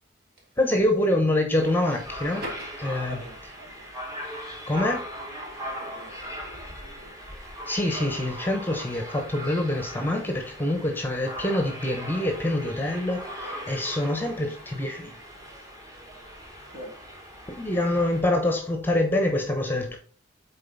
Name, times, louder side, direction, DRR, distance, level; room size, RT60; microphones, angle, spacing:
voice 1, 0.6-2.5 2.8-3.3 4.7-5.0 7.7-15.2 17.5-20.0, left 1 dB, 10° left, 1.0 m, -25 dB
sound 1, 1.6-18.2, equal, 20° right, 1.6 m, -39 dB
voice 2, 3.1-3.9 5.6-7.2 16.6-17.0, right 1 dB, 55° right, 2.6 m, -43 dB
7.4 x 4.3 x 4.0 m
head